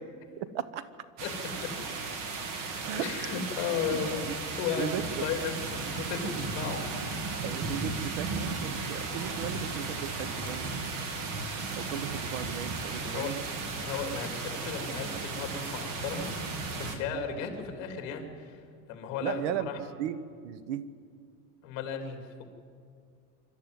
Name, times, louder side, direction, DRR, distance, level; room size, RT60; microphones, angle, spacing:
voice 1, 0.4-0.9 2.8-3.4 3.9-4.1 4.8-5.3 7.4-10.7 11.8-13.4 19.2-19.7 20.0-20.2 20.4-20.9, right 10 dB, 65° right, 15 dB, 1.1 m, -36 dB
sound 1, 1.2-17.0, right 4 dB, 45° right, 2.5 m, -35 dB
voice 2, 3.0-4.3 4.6-6.8 13.0-19.8 21.6-22.4, left 6 dB, 45° left, 5 dB, 3.1 m, -35 dB
25.0 x 13.0 x 9.4 m, 2.2 s
cardioid pair, 175°, 37 cm